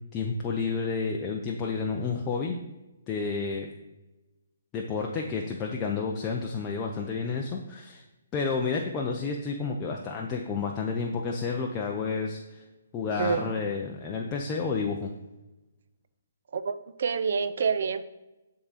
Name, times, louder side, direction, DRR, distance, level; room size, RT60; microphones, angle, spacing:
voice 1, 0.1-2.6 3.1-3.7 4.7-8.0 8.3-12.6 12.9-15.1, left 4 dB, 20° left, 0 dB, 0.5 m, -30 dB
voice 2, 13.2-13.5 16.5-18.1, right 5 dB, 60° right, 12 dB, 0.5 m, -28 dB
9.8 x 3.7 x 4.1 m, 1.0 s
hypercardioid pair, 155°, 0 cm